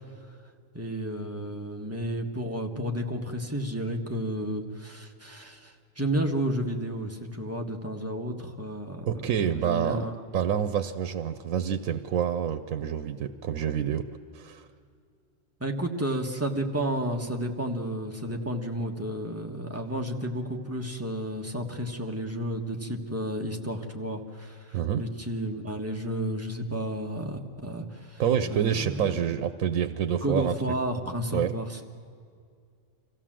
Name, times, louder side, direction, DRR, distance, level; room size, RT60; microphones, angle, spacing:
voice 1, 0.7-10.2 15.6-28.2 28.5-29.1 30.2-31.9, right 1 dB, 10° right, 2 dB, 1.3 m, -32 dB
voice 2, 9.0-10.1 10.3-14.1 14.3-14.6 24.7-25.1 28.2-30.6 31.3-31.5, right 9 dB, 85° right, 11 dB, 1.1 m, -27 dB
25.0 x 15.5 x 7.5 m, 2.3 s
omnidirectional pair, 1.4 m